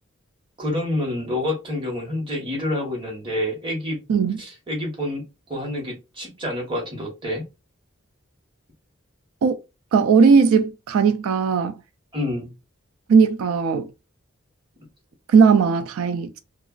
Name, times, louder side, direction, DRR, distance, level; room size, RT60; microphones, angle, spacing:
voice 1, 0.6-4.0 4.4-5.2 5.5-7.4 12.1-12.5, left 1 dB, 25° right, 1.0 m, -28 dB
voice 2, 4.1-4.4 9.4-9.6 9.9-11.8 13.1-13.9 15.3-16.4, right 5 dB, 85° right, 0.3 m, -17 dB
2.9 x 2.3 x 2.3 m
head